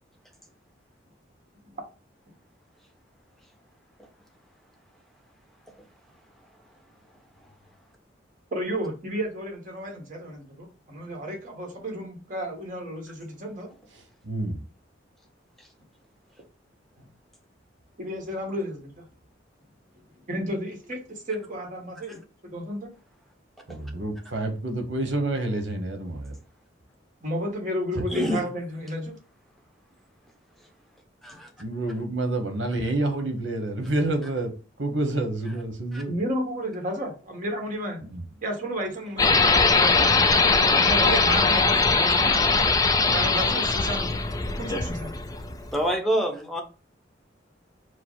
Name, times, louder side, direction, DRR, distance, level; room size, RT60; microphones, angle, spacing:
voice 1, 8.5-13.7 17.0-17.1 18.0-19.0 20.3-22.9 27.2-29.2 36.1-38.0 38.4-40.2 40.6-42.4 43.0-44.1 44.6-45.2, equal, 45° right, 1.4 m, -32 dB
voice 2, 14.2-14.6 23.7-26.3 27.9-28.0 31.6-34.5 34.8-36.1 38.0-38.2 41.3-41.4, right 2 dB, 70° right, 1.1 m, -28 dB
voice 3, 28.1-28.4 31.2-31.5 35.9-36.0 45.7-46.6, equal, ahead, 0.9 m, -26 dB
sound 1, 39.2-45.8, left 4 dB, 20° left, 0.4 m, -21 dB
4.9 x 2.0 x 4.6 m
head